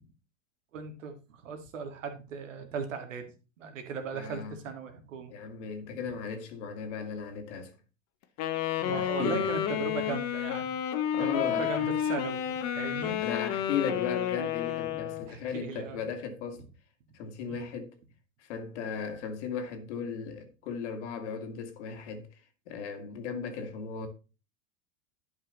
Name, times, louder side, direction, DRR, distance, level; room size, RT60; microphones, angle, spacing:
voice 1, 0.7-5.3 5.9-6.0 8.8-13.3 15.3-16.0 17.5-17.7, right 5 dB, 75° right, 2.1 m, -38 dB
voice 2, 4.1-4.6 5.3-7.7 8.9-9.4 11.1-11.9 13.2-16.6 17.1-17.9 18.4-22.3 22.7-24.1, left 6 dB, 60° left, 2.2 m, -36 dB
Wind instrument woodwind instrument, 8.4-15.3, left 10 dB, 40° left, 1.3 m, -31 dB
11.0 x 5.5 x 4.0 m
hypercardioid pair, 100°, 39 cm